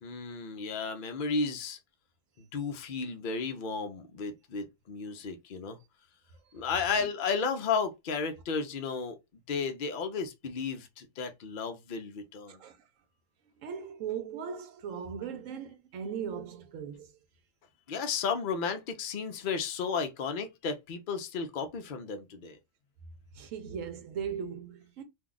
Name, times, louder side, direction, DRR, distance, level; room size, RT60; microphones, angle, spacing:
voice 1, 0.0-1.8 2.4-5.8 6.5-9.2 9.5-12.6 17.9-22.6, left 5 dB, 50° left, 0.7 m, -33 dB
voice 2, 12.5-12.9 13.6-17.2 23.3-25.0, right 7 dB, 75° right, 1.0 m, -38 dB
2.7 x 2.3 x 3.7 m
omnidirectional pair, 1.4 m